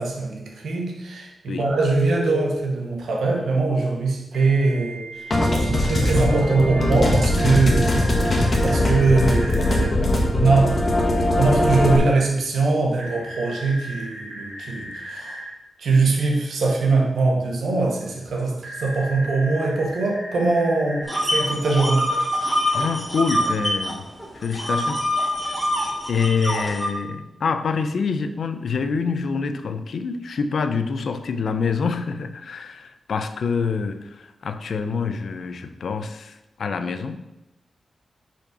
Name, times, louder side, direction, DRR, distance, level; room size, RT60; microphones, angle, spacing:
voice 1, 0.0-7.9 8.6-10.7 11.4-15.4 15.8-22.1, right 3 dB, 85° right, 0 dB, 1.5 m, -22 dB
Telephone, 1.7-2.5 4.3-9.9 13.0-15.5 18.6-21.2, equal, 60° right, 2.3 m, -35 dB
sound 1, 5.3-12.0, left 1 dB, 45° left, 1.6 m, -20 dB
sound 2, 21.1-23.9 24.2-26.9, equal, 10° left, 2.1 m, -24 dB
voice 2, 22.7-24.0 24.3-25.0 26.1-37.2, left 5 dB, 75° left, 9 dB, 0.6 m, -26 dB
5.4 x 4.4 x 5.9 m, 0.92 s
cardioid pair, 75°, 0 cm